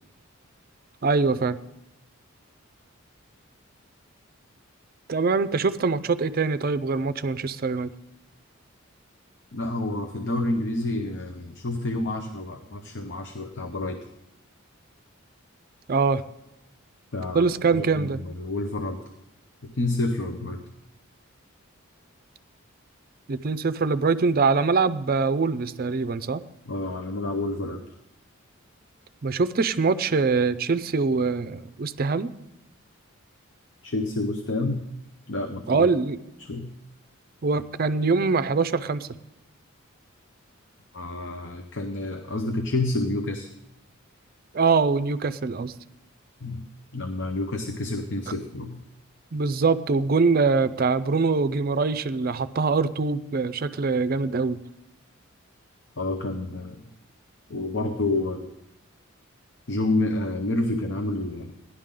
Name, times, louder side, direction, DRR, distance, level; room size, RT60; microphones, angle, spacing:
voice 1, 1.0-1.6 5.1-7.9 15.9-16.2 17.3-18.2 23.3-26.4 29.2-32.3 35.7-36.2 37.4-39.1 44.5-45.7 49.3-54.6, right 4 dB, 45° right, 13 dB, 0.5 m, -23 dB
voice 2, 9.5-14.1 17.1-19.0 19.6-20.6 26.7-27.8 33.8-34.8 35.3-35.9 36.4-36.7 40.9-43.5 46.4-46.6 46.9-48.8 56.0-56.9 57.5-58.5 59.7-61.5, left 2 dB, 60° left, 6 dB, 0.8 m, -29 dB
17.0 x 11.0 x 3.8 m, 0.89 s
head